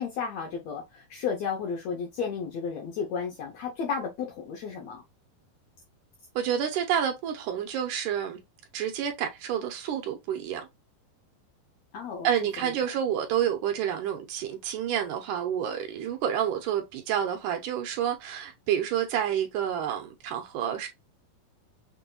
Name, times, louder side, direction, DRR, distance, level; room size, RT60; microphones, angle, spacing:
voice 1, 0.0-5.0 11.9-12.3, left 6 dB, 75° left, 1.7 m, -33 dB
voice 2, 6.4-8.4 8.7-10.7 12.2-20.9, right 9 dB, 80° right, 2.1 m, -29 dB
6.1 x 2.5 x 2.2 m
omnidirectional pair, 3.9 m